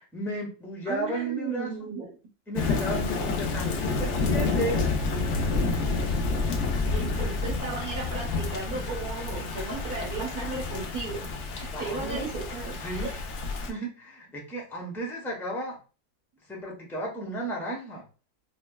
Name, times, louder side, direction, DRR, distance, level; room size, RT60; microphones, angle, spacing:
voice 1, 0.0-1.7 2.5-4.8 11.7-12.2 12.8-13.2 13.7-15.8 16.5-18.0, right 1 dB, ahead, -3 dB, 0.5 m, -34 dB
voice 2, 0.9-2.1 6.1-6.2 6.9-13.1, right 3 dB, 60° right, -6 dB, 1.6 m, -35 dB
Thunder / Rain, 2.6-13.7, left 3 dB, 75° left, 0.6 m, -29 dB
5.3 x 2.1 x 2.2 m, 0.35 s
omnidirectional pair, 1.9 m